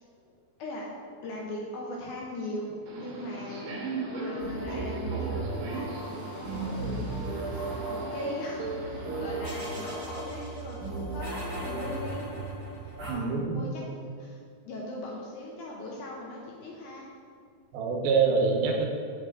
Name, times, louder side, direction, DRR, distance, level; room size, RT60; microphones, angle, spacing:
voice 1, 1.2-3.7 4.1-12.3 13.0-14.4 14.7-17.1, left 1 dB, 75° left, -2 dB, 2.0 m, -40 dB
Subway metro underground, 2.9-9.4, right 2 dB, 65° right, 1.7 m, -38 dB
sound 1, 4.4-13.1, right 2 dB, 40° right, 1.5 m, -36 dB
voice 2, 13.1-13.7 17.7-18.8, right 5 dB, 90° right, 1 dB, 2.7 m, -25 dB
8.1 x 5.9 x 3.6 m, 2.2 s
omnidirectional pair, 4.3 m